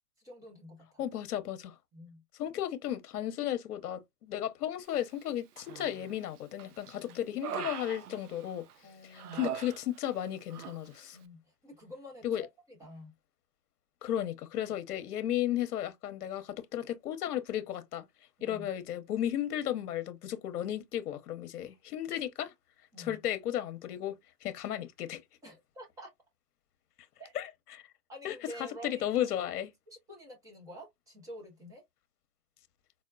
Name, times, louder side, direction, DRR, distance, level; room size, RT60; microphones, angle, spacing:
voice 1, 0.2-1.0 1.9-2.2 6.9-7.4 8.8-9.5 11.1-13.1 18.4-18.7 22.9-23.2 25.4-26.1 27.2-27.3 28.1-29.3 29.9-31.8, equal, 5° right, 0.6 m, -49 dB
voice 2, 1.0-1.7 2.4-11.2 12.2-12.5 14.0-18.1 18.4-22.5 23.0-24.2 24.4-25.2 27.3-27.5 27.7-27.8 28.2-29.7, left 11 dB, 70° left, 0.8 m, -34 dB
Human voice, 5.6-6.2 6.6-8.7 9.1-10.2 10.5-10.8, right 9 dB, 70° right, 0.6 m, -41 dB
4.4 x 2.1 x 2.3 m
hypercardioid pair, 130°, 47 cm